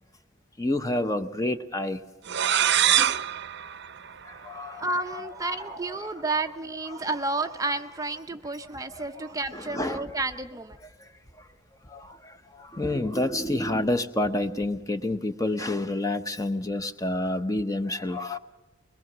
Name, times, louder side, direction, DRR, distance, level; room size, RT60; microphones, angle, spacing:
voice 1, 0.6-2.0 3.0-3.1 4.2-5.5 5.9-6.1 6.9-7.0 8.9-10.1 11.0-11.1 11.9-18.4, left 1 dB, 15° left, 10 dB, 0.8 m, -29 dB
sound 1, 2.2-4.9, right 10 dB, 55° right, 0.7 m, -25 dB
voice 2, 4.7-10.8, right 2 dB, 15° right, 7 dB, 0.6 m, -31 dB
22.0 x 21.5 x 6.1 m, 1.2 s
head